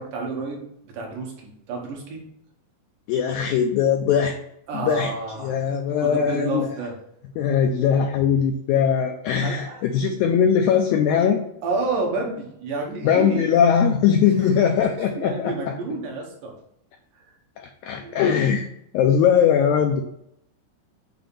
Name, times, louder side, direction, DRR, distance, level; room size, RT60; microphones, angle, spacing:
voice 1, 0.0-2.2 4.7-5.5 6.0-6.9 9.4-10.2 11.6-13.6 14.4-14.7 15.0-16.5 17.1-17.3 18.0-18.2, right 3 dB, 75° right, -1 dB, 2.8 m, -30 dB
voice 2, 3.1-4.4 4.7-5.1 5.4-6.7 7.4-11.4 13.0-15.7 17.6-18.7 18.9-20.0, left 7 dB, 80° left, 4 dB, 1.7 m, -20 dB
7.0 x 2.8 x 5.5 m, 0.74 s
omnidirectional pair, 3.9 m